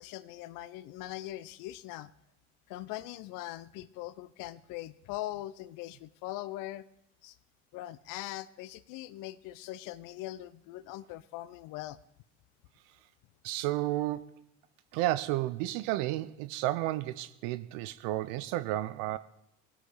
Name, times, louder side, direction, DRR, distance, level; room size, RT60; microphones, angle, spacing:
voice 1, 0.0-2.1 2.7-6.9 7.2-7.4 7.7-12.0, left 15 dB, 65° left, 0.7 m, -41 dB
voice 2, 13.4-14.3 14.9-19.2, right 15 dB, 65° right, 0.7 m, -32 dB
20.0 x 8.1 x 3.9 m
hypercardioid pair, 60°, 36 cm